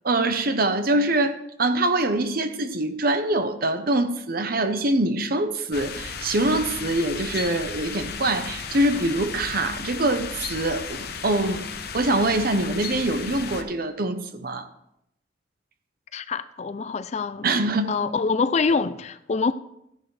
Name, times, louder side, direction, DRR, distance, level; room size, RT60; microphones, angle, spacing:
voice 1, 0.0-11.7 11.9-14.7 17.4-18.0, right 2 dB, 50° right, 0.9 m, -24 dB
sound 1, 5.7-13.6, left 6 dB, 55° left, 0.9 m, -35 dB
voice 2, 16.1-17.5 17.9-19.5, left 4 dB, 35° left, 0.4 m, -25 dB
14.0 x 10.5 x 3.3 m
head